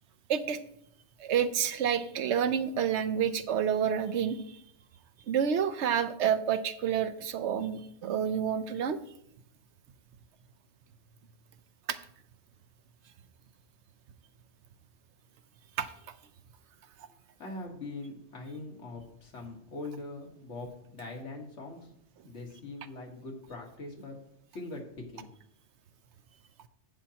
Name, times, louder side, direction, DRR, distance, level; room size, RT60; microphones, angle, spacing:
voice 1, 0.3-0.6 1.2-4.6 5.3-9.0 11.9-12.0 15.8-15.9, right 8 dB, 75° right, 12 dB, 0.9 m, -29 dB
voice 2, 17.1-21.9 22.2-24.2 24.5-25.3, left 2 dB, 80° left, 1 dB, 1.9 m, -42 dB
11.0 x 8.4 x 2.9 m, 0.72 s
omnidirectional pair, 1.2 m